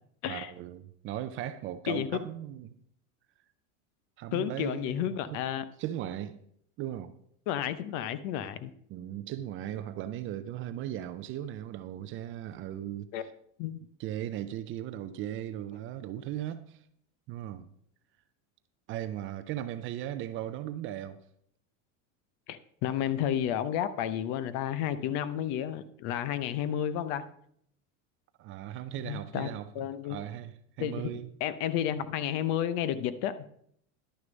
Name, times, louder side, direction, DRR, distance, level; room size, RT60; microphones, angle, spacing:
voice 1, 0.3-2.8 4.2-5.4 5.8-6.4 6.8-7.1 8.9-13.3 14.0-16.8 17.3-17.7 18.9-21.2 28.4-31.3, right 12 dB, 35° right, 0.4 m, -37 dB
voice 2, 1.9-2.3 4.3-5.6 7.5-8.7 13.1-13.2 13.6-13.8 22.5-27.2 29.0-29.5 29.7-30.2 30.8-33.4, left 10 dB, 50° left, 0.7 m, -31 dB
11.0 x 6.5 x 5.2 m
supercardioid pair, 145°, 38 cm